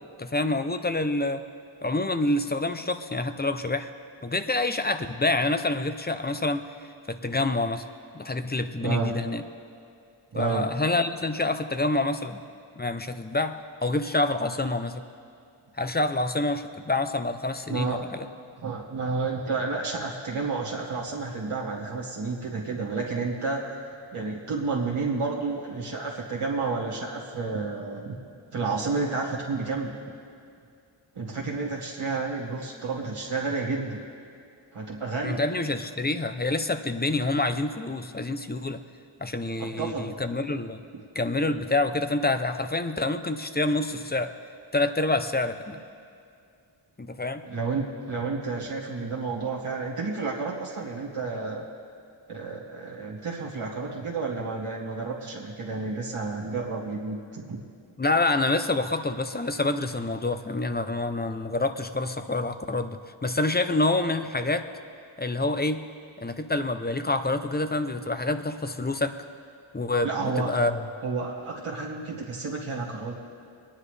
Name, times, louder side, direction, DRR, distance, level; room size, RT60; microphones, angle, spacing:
voice 1, 0.2-1.4 1.8-3.9 4.2-6.7 7.1-7.8 8.1-9.4 10.4-12.4 12.8-15.0 15.8-18.3 35.2-38.8 39.2-40.8 41.1-44.3 44.7-45.8 47.0-47.4 58.0-64.7 65.2-65.8 66.2-69.2 69.7-70.8, left 2 dB, 20° left, 9 dB, 0.6 m, -27 dB
voice 2, 8.8-9.1 10.3-10.6 17.7-18.0 18.6-28.2 28.5-29.9 31.2-34.0 34.7-35.4 39.6-40.1 47.5-51.6 52.3-57.6 70.0-70.6 71.0-73.2, right 4 dB, 85° right, -4 dB, 1.9 m, -31 dB
23.0 x 10.0 x 3.3 m, 2.4 s
cardioid pair, 55°, 50 cm